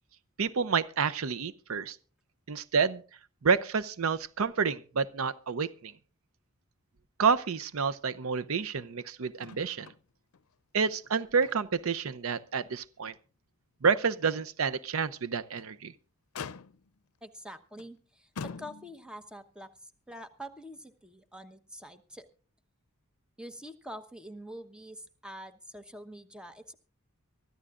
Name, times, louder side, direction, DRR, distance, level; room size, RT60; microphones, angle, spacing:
voice 1, 0.4-2.0 2.5-3.0 3.4-5.9 7.2-9.9 10.7-13.1 13.8-15.9, right 5 dB, 70° right, 0.6 m, -29 dB
Motor vehicle (road), 9.4-10.0 10.3-10.4 11.0-11.9 12.3-12.5 13.0-13.1 15.3-15.8 16.3-17.0 17.8-17.9 18.4-19.2 20.2-20.3, left 5 dB, 80° left, 0.6 m, -44 dB
voice 2, 17.2-22.3 23.4-26.7, equal, 5° right, 1.0 m, -46 dB
24.0 x 13.5 x 2.5 m
head